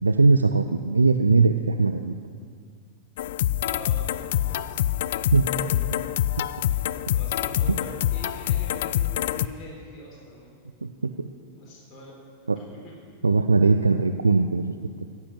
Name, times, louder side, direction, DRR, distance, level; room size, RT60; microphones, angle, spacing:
voice 1, 0.0-2.2 5.3-5.5 7.7-7.8 10.8-11.3 12.5-12.6 13.2-14.6, right 3 dB, 80° right, 9 dB, 0.4 m, -20 dB
sound 1, 3.2-9.5, left 12 dB, 55° left, 0.3 m, -26 dB
voice 2, 3.6-4.6 5.6-5.8 7.1-10.5 11.6-12.1 12.6-12.9, left 1 dB, 25° left, -5 dB, 4.2 m, -43 dB
15.0 x 8.7 x 7.9 m, 2.1 s
figure-of-eight pair, 90°, 0 cm